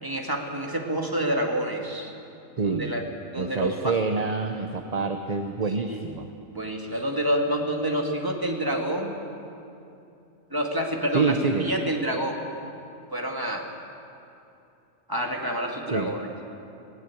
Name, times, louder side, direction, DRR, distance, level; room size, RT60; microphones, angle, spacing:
voice 1, 0.0-2.1 2.6-3.1 3.3-4.0 5.8-6.1 6.5-9.1 10.5-12.4 13.1-13.7 15.1-16.3, right 1 dB, 15° right, 1 dB, 2.1 m, -28 dB
voice 2, 2.6-2.9 3.4-6.3 6.9-7.0 11.1-11.7 15.9-16.1, right 4 dB, 35° right, 5 dB, 0.8 m, -26 dB
19.0 x 17.5 x 8.5 m, 2.7 s
omnidirectional pair, 1.4 m